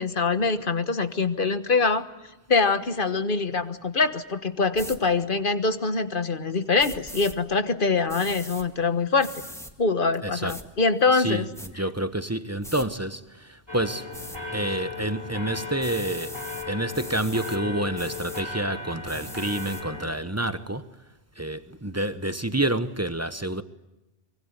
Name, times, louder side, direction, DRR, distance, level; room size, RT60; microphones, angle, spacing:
voice 1, 0.0-2.0 2.5-9.3 9.8-11.5, left 4 dB, 50° left, 1.4 m, -24 dB
sound 1, 4.7-5.0 6.8-7.4 8.1-8.7 9.2-9.7 10.5-10.6 11.2-11.7 12.6-12.9 14.1-14.4 15.8-16.7 16.9-17.6 18.0-18.4 19.1-19.8, equal, 5° left, 2.0 m, -41 dB
voice 2, 10.2-10.6 11.1-14.1 14.5-16.4 16.7-21.0 21.4-23.6, right 1 dB, 15° right, 0.9 m, -28 dB
sound 2, 13.7-20.1, left 3 dB, 20° left, 6.0 m, -36 dB
24.0 x 23.5 x 9.8 m
omnidirectional pair, 1.1 m